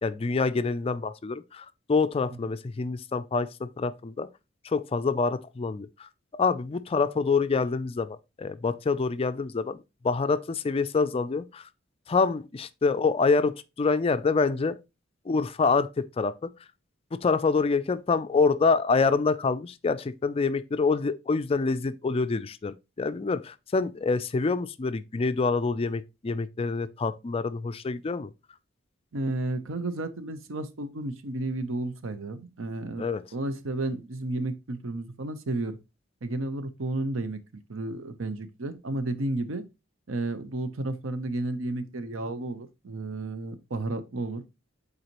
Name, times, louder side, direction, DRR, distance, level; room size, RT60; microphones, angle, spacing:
voice 1, 0.0-4.3 4.6-11.7 12.1-14.8 15.3-16.5 17.1-28.3 33.0-33.2, left 4 dB, 30° left, 0.3 m, -26 dB
voice 2, 29.1-33.1 33.3-35.8 36.2-37.4 37.7-39.6 40.1-44.4, right 2 dB, 90° right, 0.8 m, -32 dB
8.0 x 4.0 x 3.0 m
head